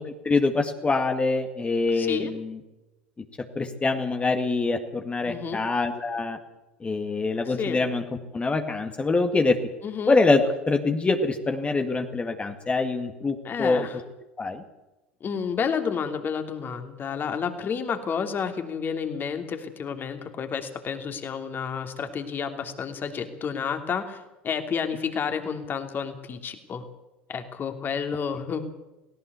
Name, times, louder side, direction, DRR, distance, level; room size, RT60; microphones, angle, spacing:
voice 1, 0.1-2.6 3.6-6.4 6.8-8.1 8.3-9.6 10.1-10.4 10.7-13.9 14.4-14.6, left 3 dB, 20° left, 6 dB, 2.0 m, -24 dB
voice 2, 2.0-2.3 5.3-5.6 7.5-7.8 9.8-10.1 13.4-14.0 15.2-26.8 27.3-28.7, left 6 dB, 35° left, 7 dB, 3.0 m, -30 dB
18.0 x 17.5 x 8.2 m, 1.0 s
hypercardioid pair, 75°, 6 cm